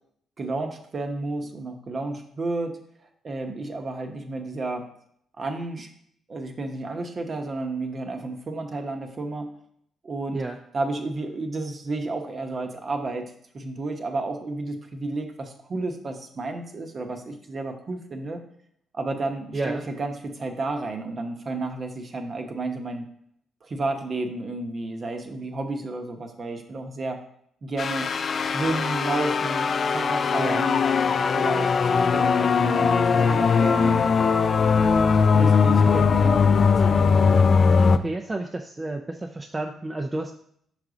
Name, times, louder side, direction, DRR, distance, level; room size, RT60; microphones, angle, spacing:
voice 1, 0.4-2.8 3.2-4.9 5.4-5.9 6.3-9.5 10.0-10.4 10.7-13.2 13.5-18.4 18.9-23.1 23.6-27.2 27.6-28.1 28.4-30.8 31.3-34.0 35.3-37.0, right 2 dB, 40° right, 5 dB, 0.9 m, -31 dB
voice 2, 19.5-19.9 30.4-30.6 35.9-36.1 37.3-37.5 37.9-40.3, right 2 dB, 20° right, 2 dB, 0.5 m, -31 dB
sound 1, 27.8-38.0, left 5 dB, 45° left, 0.4 m, -20 dB
5.9 x 4.9 x 3.9 m, 0.68 s
cardioid pair, 90°, 0 cm